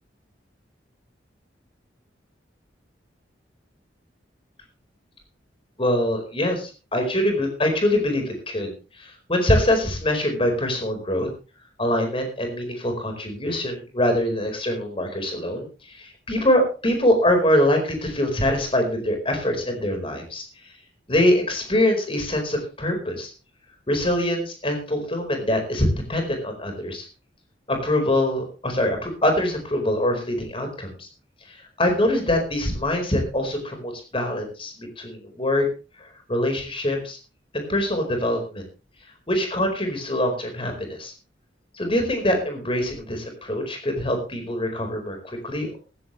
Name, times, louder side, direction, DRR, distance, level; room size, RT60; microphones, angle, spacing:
voice 1, 5.8-11.3 11.8-20.7 21.1-23.3 23.9-27.1 27.7-31.1 31.5-35.7 36.0-37.2 37.5-38.6 39.3-41.1 41.7-45.7, left 1 dB, 30° left, 4 dB, 4.7 m, -24 dB
15.5 x 15.0 x 3.3 m, 0.33 s
head